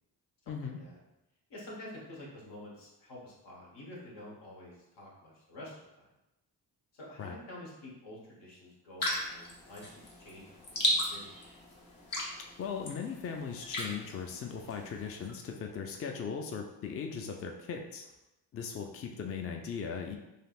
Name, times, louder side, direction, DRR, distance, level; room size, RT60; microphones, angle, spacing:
voice 1, 0.5-0.8 7.2-7.4 12.6-18.0 18.5-20.2, left 6 dB, 35° left, 3 dB, 0.4 m, -38 dB
voice 2, 1.5-6.1 6.9-11.4, left 1 dB, 80° left, -4 dB, 1.1 m, -48 dB
sound 1, 9.0-15.3, equal, 55° left, 1.0 m, -36 dB
3.3 x 2.7 x 2.4 m, 0.92 s
cardioid pair, 60°, 41 cm